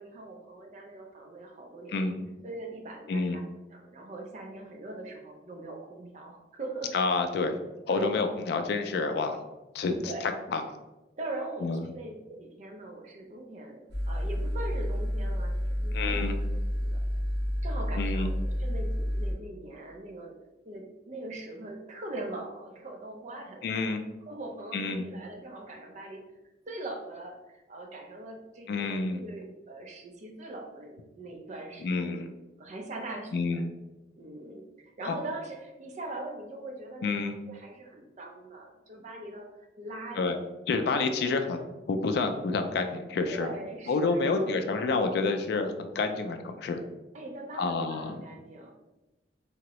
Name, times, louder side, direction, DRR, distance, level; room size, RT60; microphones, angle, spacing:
voice 1, 0.0-2.0 2.4-3.4 3.7-6.9 7.9-8.1 9.9-10.3 11.2-17.0 17.6-20.4 20.7-26.2 26.7-32.2 32.6-33.6 34.2-37.1 37.5-39.5 39.8-40.5 41.2-41.3 43.2-44.6 47.1-48.7, right 2 dB, 40° right, 2 dB, 0.5 m, -41 dB
voice 2, 1.9-2.3 3.1-3.4 6.9-7.5 7.9-9.4 9.7-10.6 11.6-11.8 15.9-16.3 18.0-18.3 23.6-24.0 24.7-25.1 28.7-29.2 31.8-32.3 33.3-33.7 35.0-35.2 37.0-37.3 40.2-40.4 40.7-41.6 41.9-43.5 43.9-46.8 47.6-48.2, left 3 dB, 60° left, 6 dB, 0.3 m, -28 dB
sound 1, 13.9-19.3, equal, 70° right, 0.9 m, -30 dB
3.5 x 2.0 x 2.9 m, 1.0 s
head